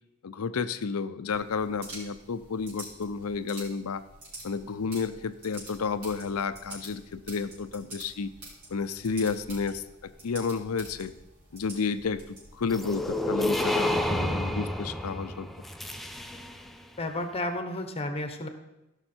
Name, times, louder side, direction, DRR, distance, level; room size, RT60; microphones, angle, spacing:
voice 1, 0.2-4.0 4.4-8.3 8.7-9.8 10.2-11.1 11.5-15.5, left 5 dB, 90° left, 12 dB, 0.6 m, -31 dB
sound 1, 1.3-13.1, right 1 dB, 70° right, 4.4 m, -47 dB
sound 2, 12.7-16.7, left 1 dB, ahead, 0.5 m, -30 dB
voice 2, 17.0-18.5, left 1 dB, 30° left, 7 dB, 1.0 m, -32 dB
15.5 x 5.8 x 4.4 m, 0.95 s
head